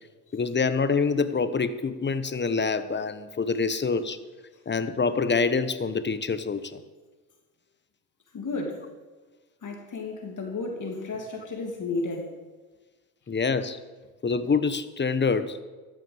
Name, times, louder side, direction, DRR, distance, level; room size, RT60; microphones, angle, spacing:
voice 1, 0.3-4.2 4.7-6.8 13.3-13.8 14.2-15.6, left 4 dB, 25° left, 1.1 m, -26 dB
voice 2, 8.3-8.8 9.6-12.3, left 3 dB, 40° left, 2.7 m, -33 dB
14.0 x 7.4 x 7.2 m
hypercardioid pair, 60°, 44 cm